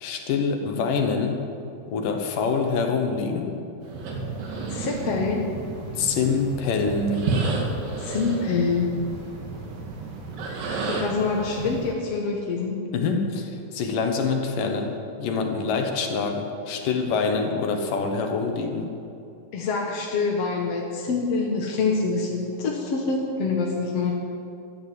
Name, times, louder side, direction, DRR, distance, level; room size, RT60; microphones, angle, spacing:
voice 1, 0.0-1.4 1.9-3.5 6.0-7.3 12.9-18.9, left 4 dB, 75° left, 4 dB, 2.9 m, -25 dB
sound 1, 3.8-11.9, right 3 dB, 80° right, 3.7 m, -31 dB
voice 2, 4.7-5.4 8.0-8.9 10.8-12.8 19.5-24.1, left 4 dB, 55° left, -2 dB, 2.1 m, -26 dB
14.5 x 10.5 x 7.8 m, 2.6 s
omnidirectional pair, 4.0 m